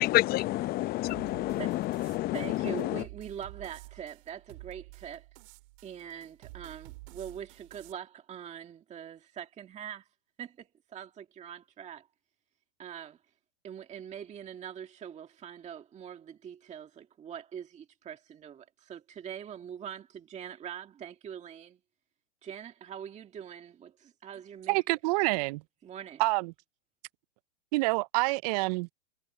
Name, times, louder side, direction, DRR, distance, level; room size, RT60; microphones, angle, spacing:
voice 1, 0.0-3.0, left 16 dB, 30° left, 0.7 m, -29 dB
sound 1, 1.1-7.9, right 23 dB, 55° right, 4.8 m, -51 dB
voice 2, 1.6-1.9 2.3-5.3 5.8-10.1 10.4-12.1 12.8-13.2 13.6-21.8 22.4-24.8 25.8-26.2, right 9 dB, 20° right, 1.9 m, -43 dB
voice 3, 24.7-25.6 26.2-26.5 27.7-28.9, right 25 dB, 40° right, 0.4 m, -27 dB
hypercardioid pair, 125°, 33 cm